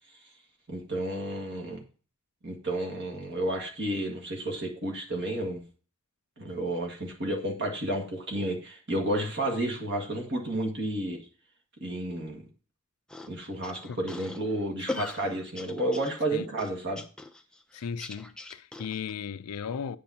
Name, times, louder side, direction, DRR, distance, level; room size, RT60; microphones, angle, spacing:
voice 1, 0.7-1.8 2.4-5.6 6.4-11.2 11.8-12.4 13.3-17.0, right 1 dB, 50° right, 1.8 m, -31 dB
sound 1, 13.1-19.1, left 2 dB, 5° left, 0.4 m, -41 dB
voice 2, 14.8-15.1 16.3-16.5 17.7-20.0, left 7 dB, 85° left, 0.4 m, -36 dB
8.6 x 6.8 x 2.8 m
head